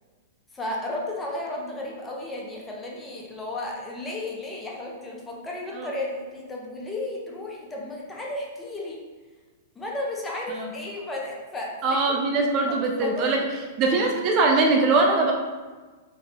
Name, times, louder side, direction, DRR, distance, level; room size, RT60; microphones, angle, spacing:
voice 1, 0.5-9.0 9.7-12.0 12.4-13.3, left 1 dB, 10° left, -2 dB, 0.8 m, -34 dB
voice 2, 11.8-13.4 13.8-15.3, right 3 dB, 40° right, 1 dB, 0.5 m, -22 dB
3.4 x 3.2 x 3.6 m, 1.3 s
hypercardioid pair, 130°, 0 cm